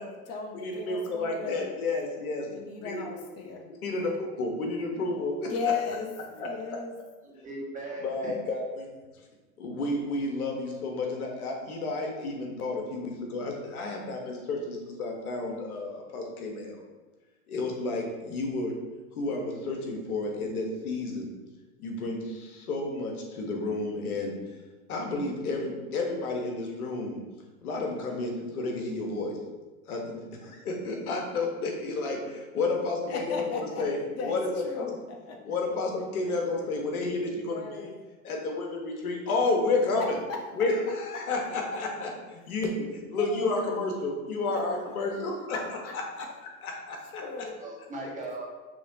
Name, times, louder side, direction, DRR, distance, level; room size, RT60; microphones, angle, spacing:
voice 1, 0.0-1.7 2.4-4.2 5.4-6.1 6.4-6.9 33.1-33.8 34.2-35.4 37.2-37.9 40.3-40.4 43.2-43.5 44.5-44.6 45.5-46.3 47.1-47.6, left 5 dB, 35° left, 1 dB, 1.0 m, -36 dB
voice 2, 0.6-2.5 2.8-2.9 3.8-5.5 6.4-6.5 8.0-8.9 9.6-16.8 17.5-18.7 19.2-21.3 21.8-24.3 24.9-27.2 27.6-29.4 29.9-34.5 34.7-34.9 35.4-37.9 38.2-40.2 40.6-45.6 46.2-46.3 46.6-47.2, left 3 dB, 75° left, 1 dB, 1.3 m, -31 dB
voice 3, 7.2-8.4 47.5-48.5, right 2 dB, 15° right, -4 dB, 1.4 m, -39 dB
6.2 x 3.1 x 2.7 m, 1.2 s
hypercardioid pair, 105°, 44 cm